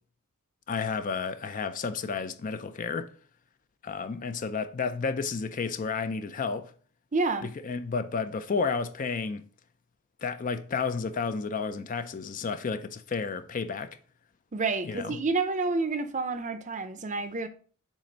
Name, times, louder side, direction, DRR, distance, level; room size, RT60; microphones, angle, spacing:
voice 1, 0.7-3.1 3.8-6.7 7.6-9.4 10.2-14.0 14.8-15.2, left 5 dB, 35° left, 0.4 m, -31 dB
voice 2, 7.1-7.5 14.5-17.5, right 3 dB, 35° right, 0.5 m, -29 dB
7.3 x 2.6 x 5.1 m
head